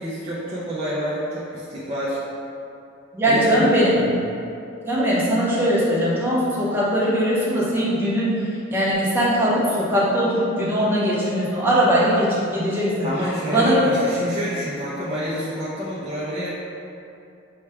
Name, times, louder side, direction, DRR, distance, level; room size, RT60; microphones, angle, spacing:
voice 1, 0.0-2.2 3.3-4.2 13.0-16.5, equal, 30° right, -10 dB, 0.6 m, -28 dB
voice 2, 3.1-4.0 4.8-8.3 8.7-12.9 13.5-13.8, equal, 10° right, -8 dB, 0.9 m, -20 dB
5.6 x 2.3 x 3.4 m, 2.6 s
head